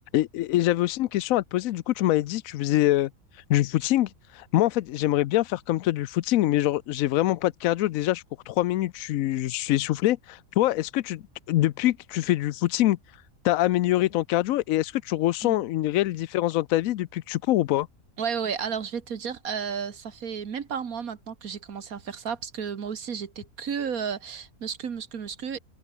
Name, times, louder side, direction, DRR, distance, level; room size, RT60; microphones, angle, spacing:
voice 1, 0.1-3.1 3.5-11.2 11.5-13.0 13.4-17.9, left 15 dB, 80° left, 1.0 m, -24 dB
voice 2, 18.2-25.6, right 7 dB, 90° right, 2.0 m, -33 dB
omnidirectional pair, 1.5 m